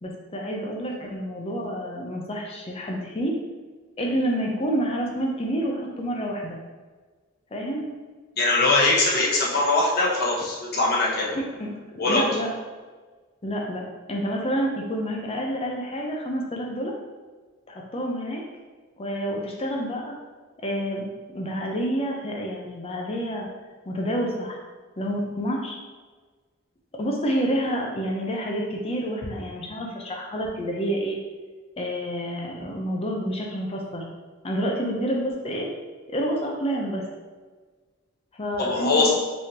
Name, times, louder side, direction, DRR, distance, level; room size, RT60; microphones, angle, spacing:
voice 1, 0.0-3.4 4.0-6.6 7.5-7.9 11.3-11.7 12.1-12.5 13.4-16.9 17.7-18.4 19.0-20.1 20.6-21.1 21.3-23.5 23.9-24.6 25.0-25.8 27.0-31.2 31.8-34.1 34.4-35.7 36.1-37.1 38.3-39.1, equal, 30° left, -1 dB, 0.6 m, -28 dB
voice 2, 8.4-11.3 12.0-12.2 38.6-39.1, left 2 dB, 50° left, -5 dB, 1.2 m, -21 dB
5.4 x 3.2 x 2.9 m, 1.4 s
head